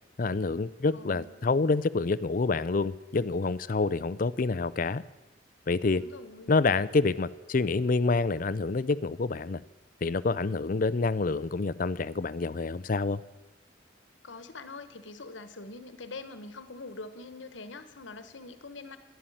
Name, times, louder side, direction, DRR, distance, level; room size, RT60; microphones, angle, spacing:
voice 1, 0.2-5.0 5.7-6.0 6.5-9.6 10.0-13.2, left 3 dB, 45° left, 18 dB, 0.5 m, -27 dB
voice 2, 0.9-1.4 5.9-6.6 14.2-19.0, left 3 dB, 85° left, 11 dB, 1.2 m, -44 dB
11.5 x 11.5 x 9.0 m, 1.1 s
head